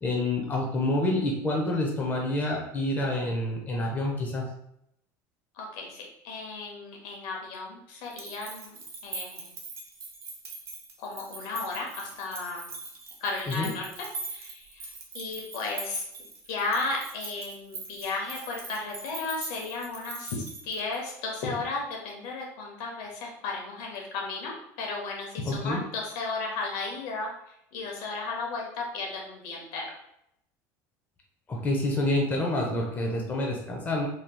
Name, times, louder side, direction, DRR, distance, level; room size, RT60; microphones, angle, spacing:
voice 1, 0.0-4.5 13.5-13.7 25.5-25.8 31.5-34.1, left 1 dB, 20° left, -1 dB, 0.6 m, -28 dB
voice 2, 5.5-8.8 9.0-9.5 11.0-12.7 13.2-14.1 14.3-16.0 16.5-27.3 27.7-29.9, left 3 dB, 75° left, -1 dB, 0.9 m, -34 dB
sound 1, 8.0-21.1, right 3 dB, 35° right, 0.7 m, -42 dB
3.2 x 2.9 x 2.2 m, 0.76 s
cardioid pair, 130°, 8 cm